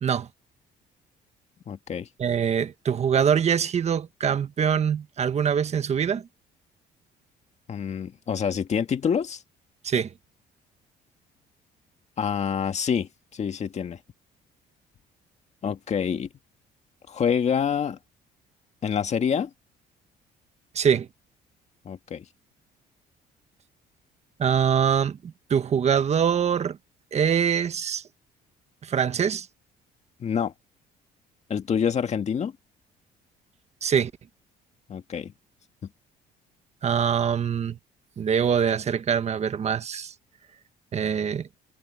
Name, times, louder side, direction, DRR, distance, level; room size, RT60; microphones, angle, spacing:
voice 1, 1.7-2.1 7.7-9.4 12.2-14.0 15.6-16.3 17.1-18.0 18.8-19.5 21.9-22.2 30.2-30.5 31.5-32.5 34.9-35.3, left 7 dB, 40° left, 1.9 m, -26 dB
voice 2, 2.2-6.3 9.8-10.1 20.7-21.1 24.4-26.8 27.1-28.0 28.8-29.5 33.8-34.1 36.8-37.8 38.2-40.1 40.9-41.5, right 7 dB, 40° right, 1.4 m, -24 dB
cardioid pair, 110°, 17 cm